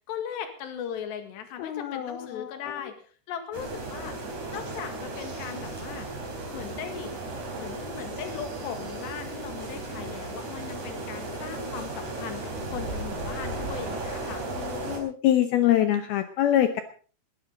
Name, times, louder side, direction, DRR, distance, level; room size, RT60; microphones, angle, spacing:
voice 1, 0.1-2.9 3.3-4.2 4.5-6.1 6.5-7.1 7.6-14.4, left 8 dB, 65° left, 7 dB, 3.9 m, -38 dB
voice 2, 1.6-2.9 14.3-16.8, left 12 dB, 85° left, 8 dB, 2.2 m, -25 dB
sound 1, 3.5-15.0, right 2 dB, 40° right, 5.3 m, -35 dB
20.5 x 13.0 x 3.8 m, 0.40 s
omnidirectional pair, 5.6 m